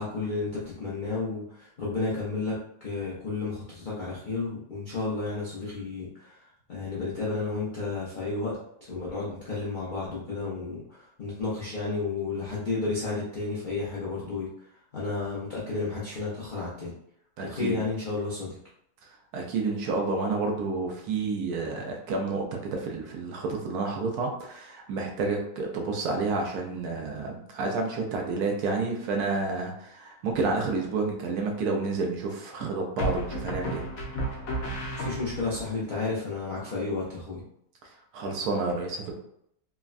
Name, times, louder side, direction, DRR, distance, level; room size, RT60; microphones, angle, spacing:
voice 1, 0.0-6.4 6.7-8.6 8.8-14.5 14.9-16.9 17.4-18.5 34.9-37.4, left 3 dB, 85° left, -7 dB, 0.4 m, -32 dB
voice 2, 17.4-17.8 19.0-33.9 37.8-39.1, right 3 dB, 70° right, 1 dB, 1.0 m, -30 dB
sound 1, 30.3-30.9 33.0-35.6, right 1 dB, 65° left, 1.0 m, -33 dB
3.4 x 2.1 x 2.3 m, 0.72 s
omnidirectional pair, 1.8 m